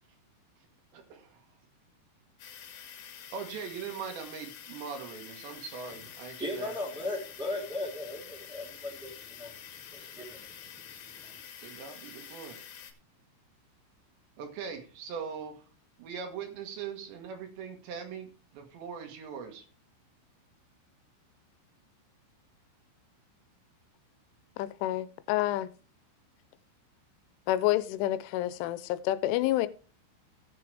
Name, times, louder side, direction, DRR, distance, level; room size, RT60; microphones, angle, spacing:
voice 1, 0.9-1.4 3.3-6.8 11.6-12.6 14.4-15.6 16.0-19.7, right 6 dB, 70° right, 3.5 m, -41 dB
sound 1, 2.4-12.9, left 9 dB, 65° left, 2.7 m, -47 dB
voice 2, 6.4-9.5 9.9-10.7 11.2-11.3, left 2 dB, ahead, 2.0 m, -37 dB
voice 3, 24.6-25.7 27.5-29.7, left 15 dB, 85° left, 3.0 m, -28 dB
17.5 x 6.9 x 3.3 m
omnidirectional pair, 5.5 m